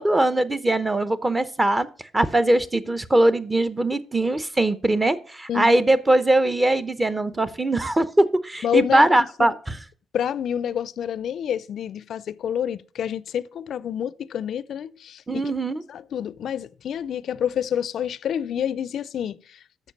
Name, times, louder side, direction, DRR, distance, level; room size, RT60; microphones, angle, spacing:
voice 1, 0.0-1.9 2.1-9.8 15.3-15.8, right 1 dB, 20° right, 0.7 m, -21 dB
voice 2, 8.6-9.5 10.1-15.4 15.9-19.6, left 9 dB, 65° left, 0.4 m, -28 dB
7.2 x 6.5 x 5.3 m
cardioid pair, 90°, 0 cm